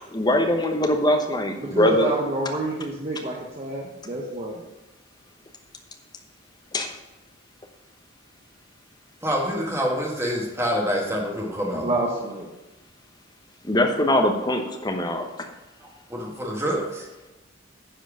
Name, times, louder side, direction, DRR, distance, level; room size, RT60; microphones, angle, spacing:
voice 1, 0.1-2.1 6.7-6.9 13.7-15.2, left 1 dB, 20° left, 4 dB, 1.0 m, -22 dB
voice 2, 1.6-4.5 11.7-12.5, right 2 dB, 30° right, -3 dB, 1.0 m, -28 dB
voice 3, 9.2-11.9 15.8-17.1, equal, 15° right, -2 dB, 1.8 m, -27 dB
10.0 x 4.6 x 6.3 m, 1.0 s
head